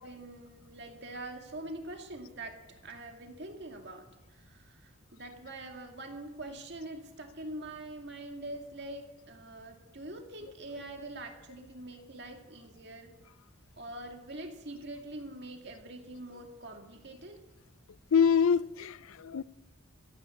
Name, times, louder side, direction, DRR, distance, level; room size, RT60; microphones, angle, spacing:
voice 1, 0.0-13.1 13.8-17.4, right 1 dB, 55° right, 2.2 m, -44 dB
voice 2, 18.1-19.4, left 7 dB, 85° left, 0.5 m, -25 dB
14.5 x 9.6 x 8.5 m
head